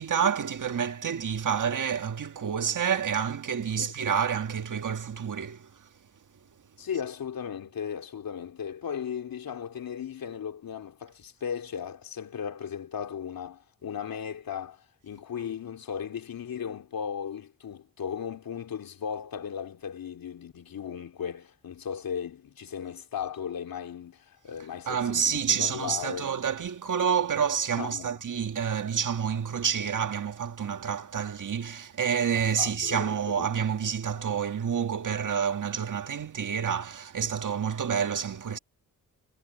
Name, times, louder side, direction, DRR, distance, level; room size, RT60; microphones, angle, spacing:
voice 1, 0.0-5.7 24.9-38.6, right 7 dB, 60° right, 1.8 m, -28 dB
voice 2, 6.8-25.3 25.6-26.3 27.7-28.1 32.3-33.5, left 8 dB, 80° left, 3.1 m, -36 dB
cardioid pair, 90°, 34 cm